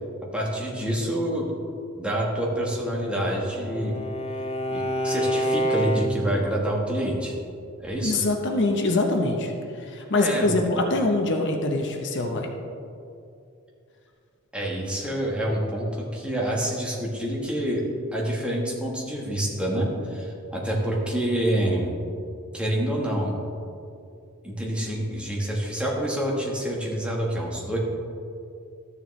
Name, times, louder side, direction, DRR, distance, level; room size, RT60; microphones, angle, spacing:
voice 1, 0.3-1.5 2.0-4.0 4.7-7.3 7.8-8.2 10.1-10.5 14.5-17.8 18.1-21.9 22.5-23.3 24.4-27.8, right 1 dB, 5° right, -3 dB, 1.3 m, -27 dB
Bowed string instrument, 2.8-6.5, equal, 30° left, 0.5 m, -28 dB
voice 2, 8.0-9.5 9.8-12.5, left 2 dB, 55° left, 3 dB, 0.8 m, -24 dB
13.5 x 6.8 x 3.2 m, 2.5 s
head